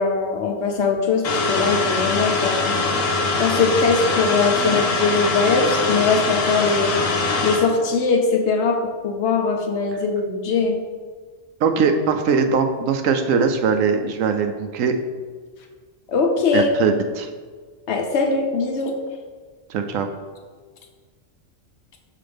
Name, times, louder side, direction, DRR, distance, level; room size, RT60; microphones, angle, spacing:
voice 1, 0.0-2.8 3.4-6.9 7.4-8.8 9.0-10.8 16.1-16.7 17.9-18.9, left 4 dB, 65° left, 3 dB, 0.8 m, -21 dB
sound 1, 1.2-7.6, left 3 dB, 85° left, 1.2 m, -22 dB
voice 2, 11.6-15.0 16.5-17.3 19.7-20.1, right 5 dB, 80° right, 6 dB, 1.0 m, -21 dB
5.7 x 5.0 x 3.4 m, 1.5 s
omnidirectional pair, 1.4 m